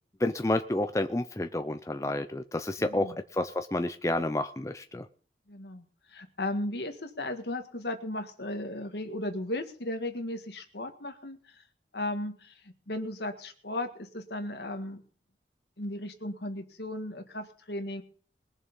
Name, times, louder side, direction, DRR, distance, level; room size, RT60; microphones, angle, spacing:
voice 1, 0.2-5.1, left 1 dB, 15° left, 8 dB, 0.6 m, -30 dB
voice 2, 2.8-3.2 5.5-11.6 11.9-15.0 15.8-18.0, left 1 dB, 70° left, 6 dB, 1.9 m, -36 dB
21.5 x 7.2 x 5.5 m, 0.43 s
head